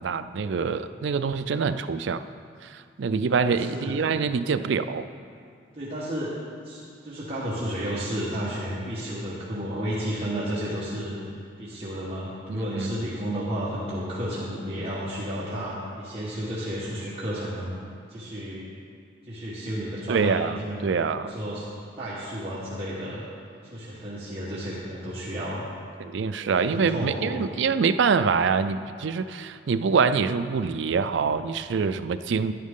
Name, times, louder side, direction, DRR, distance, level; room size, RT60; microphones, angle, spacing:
voice 1, 0.0-2.2 2.7-5.1 12.5-12.9 20.1-20.6 20.8-21.3 26.0-32.5, right 5 dB, 65° right, 11 dB, 0.4 m, -25 dB
voice 2, 3.2-4.0 5.7-6.4 6.6-11.2 11.6-17.7 18.1-18.6 19.3-20.8 21.1-21.7 22.0-23.2 23.6-25.7 26.4-27.5, equal, 30° right, -10 dB, 1.4 m, -32 dB
10.5 x 10.0 x 3.7 m, 2.3 s
head